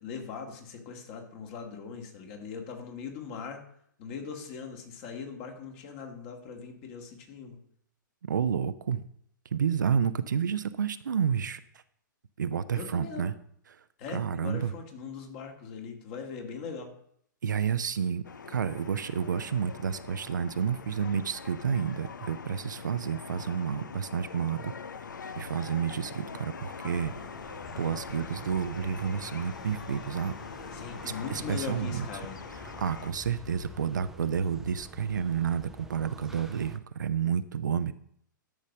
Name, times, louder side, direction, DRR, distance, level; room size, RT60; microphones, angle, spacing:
voice 1, 0.0-3.7 4.0-7.6 12.7-13.3 14.0-16.9 30.7-32.4, left 6 dB, 35° left, 4 dB, 2.2 m, -40 dB
voice 2, 8.3-9.0 9.5-11.6 12.4-13.3 14.1-14.7 17.4-24.7 25.4-27.1 27.8-30.3 31.0-32.1 32.8-37.9, right 7 dB, 65° right, 12 dB, 0.7 m, -30 dB
sound 1, 18.2-33.1, left 6 dB, 70° left, 0.7 m, -43 dB
sound 2, 26.9-36.8, equal, 5° right, 0.7 m, -48 dB
12.5 x 5.3 x 6.3 m, 0.68 s
figure-of-eight pair, 115°, 11 cm